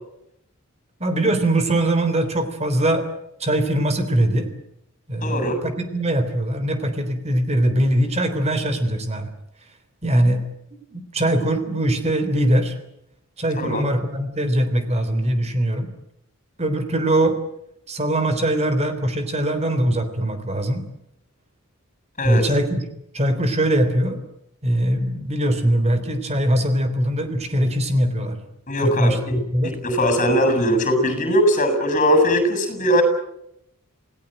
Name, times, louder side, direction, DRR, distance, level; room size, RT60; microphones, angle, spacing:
voice 1, 1.0-3.1 3.4-4.5 5.1-9.3 10.0-10.4 10.9-12.8 13.4-15.9 16.6-17.4 17.9-20.9 22.2-22.9 23.1-24.2 24.6-28.4 28.8-29.8, right 1 dB, 30° right, 9 dB, 3.5 m, -21 dB
voice 2, 5.2-5.6 13.6-13.8 22.2-22.4 28.7-29.3 29.6-33.0, equal, 35° left, 9 dB, 7.4 m, -20 dB
28.0 x 18.0 x 9.1 m, 0.79 s
head